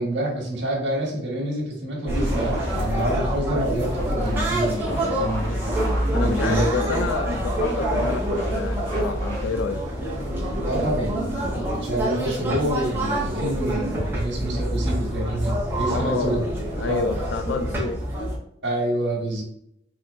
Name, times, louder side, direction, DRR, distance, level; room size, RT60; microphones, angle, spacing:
voice 1, 0.0-5.5 6.1-6.7 10.6-16.4 16.9-17.0 18.6-19.4, right 1 dB, 75° right, 1.3 m, -27 dB
sound 1, 2.1-13.2, equal, 15° left, 1.4 m, -39 dB
sound 2, 2.1-18.4, right 1 dB, 10° right, 0.9 m, -26 dB
voice 2, 6.1-9.8 15.9-16.5 16.8-18.0, left 5 dB, 80° left, 0.3 m, -28 dB
4.4 x 3.8 x 2.4 m
head